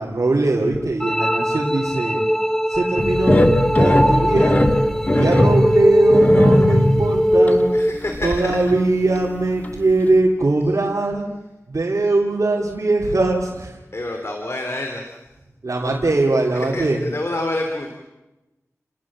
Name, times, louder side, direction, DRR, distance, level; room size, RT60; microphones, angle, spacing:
voice 1, 0.0-2.2 2.7-3.5 3.8-4.8 5.1-7.7 8.2-11.3 11.7-13.7 15.6-17.0, right 2 dB, 70° right, -3 dB, 3.3 m, -21 dB
sound 1, 1.0-8.0, equal, 10° left, 1.4 m, -20 dB
sound 2, 3.0-7.1 7.5-7.6 8.1-8.8 9.2-9.3 9.6-9.7, left 1 dB, 30° left, 2.6 m, -18 dB
voice 2, 7.7-8.7 10.6-10.7 13.9-15.2 15.8-16.0 16.5-17.9, left 2 dB, 55° left, 3 dB, 3.3 m, -28 dB
30.0 x 19.5 x 7.6 m, 1.0 s
wide cardioid pair, 70°, 6 cm